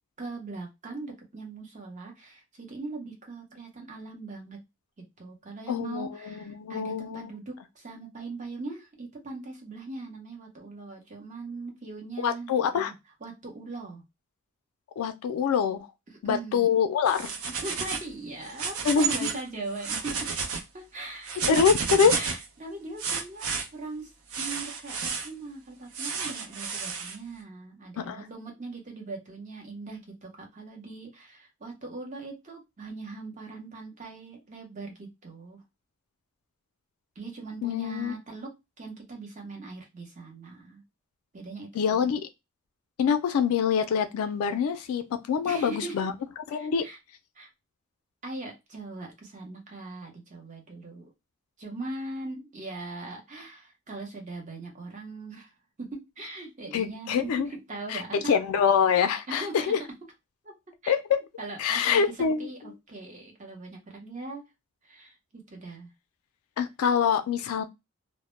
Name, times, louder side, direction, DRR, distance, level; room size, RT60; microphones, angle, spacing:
voice 1, 0.2-4.6 5.2-12.8 13.2-14.0 16.1-16.7 17.6-20.3 20.7-21.7 22.1-24.1 24.4-35.6 37.2-40.8 41.3-42.1 45.4-46.1 46.5-47.0 47.4-47.5 48.2-51.1 51.6-55.5 55.8-58.3 59.3-59.7 60.4-60.5 60.8-60.9 61.4-62.1 62.4-64.5 64.8-65.2 65.5-65.9, right 3 dB, 35° right, 0.7 m, -40 dB
voice 2, 5.7-7.3 12.2-12.9 15.0-15.9 16.2-17.3 18.8-19.3 21.5-22.2 28.0-28.3 37.6-38.1 41.7-42.3 43.0-46.1 46.5-46.9 56.7-57.5 57.9-59.8 60.9-61.2 61.6-62.5 66.6-67.6, left 7 dB, 85° left, 0.3 m, -25 dB
sound 1, 17.1-18.1 18.5-19.4 19.7-20.6 21.2-22.5 23.0-23.7 24.3-25.3 25.9-27.2, right 5 dB, 85° right, 0.5 m, -31 dB
2.0 x 2.0 x 3.0 m
head